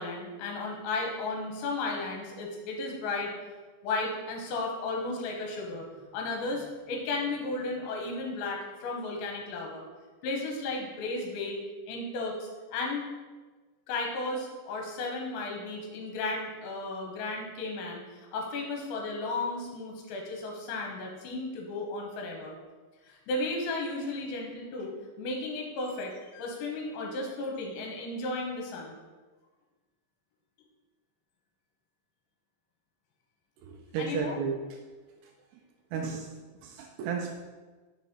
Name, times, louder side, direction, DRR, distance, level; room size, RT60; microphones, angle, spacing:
voice 1, 0.0-3.3 3.8-5.9 6.1-9.8 10.2-11.6 11.9-13.0 13.9-18.0 18.3-22.5 23.0-24.9 25.2-29.0 34.0-34.4, left 2 dB, 80° left, 0 dB, 3.1 m, -34 dB
voice 2, 33.6-34.6 35.9-36.3 36.6-37.4, right 6 dB, 90° right, 1 dB, 2.4 m, -33 dB
6.6 x 4.0 x 4.1 m, 1.3 s
omnidirectional pair, 5.4 m